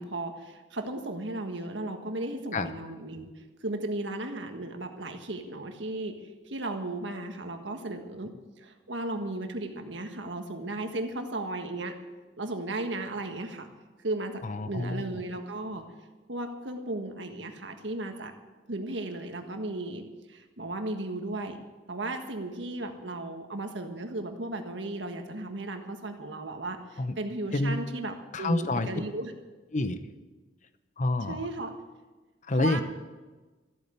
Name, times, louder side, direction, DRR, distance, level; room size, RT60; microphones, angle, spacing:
voice 1, 0.0-3.3 3.6-6.2 6.5-11.9 12.4-13.7 14.0-15.8 16.3-18.3 18.7-20.0 20.3-21.6 21.9-29.3 31.3-31.7 32.5-32.8, right 2 dB, 75° right, 5 dB, 1.6 m, -35 dB
voice 2, 14.4-15.2 27.0-27.1 27.5-27.8 28.3-28.9 29.7-30.0 31.0-31.4 32.5-32.8, left 2 dB, 40° left, 10 dB, 0.8 m, -28 dB
14.0 x 8.7 x 8.3 m, 1.2 s
head